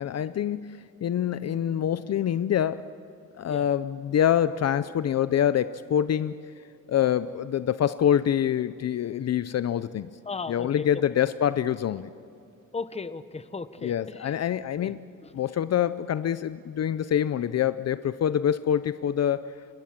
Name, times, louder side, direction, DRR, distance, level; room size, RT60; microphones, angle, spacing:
voice 1, 0.0-2.9 3.4-6.4 6.9-10.1 10.5-12.1 13.8-15.0 15.3-19.6, left 10 dB, 50° left, 14 dB, 0.6 m, -25 dB
voice 2, 10.3-10.9 12.7-14.3 14.8-14.9 15.2-15.3, left 4 dB, 20° left, 13 dB, 0.9 m, -36 dB
30.0 x 26.0 x 7.6 m, 2.7 s
wide cardioid pair, 160°, 32 cm